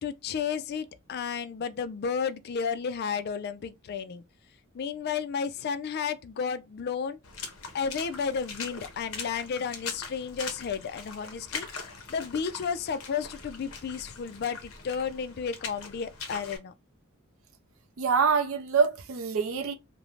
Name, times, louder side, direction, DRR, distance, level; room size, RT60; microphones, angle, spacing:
voice 1, 0.0-4.2 4.7-7.2 7.7-11.7 12.1-16.7, left 6 dB, 50° left, 0.3 m, -32 dB
Water / Splash splatter, 7.2-16.6, left 5 dB, 80° left, 0.7 m, -41 dB
voice 2, 18.0-19.7, right 5 dB, 70° right, 0.4 m, -25 dB
2.5 x 2.1 x 3.0 m
head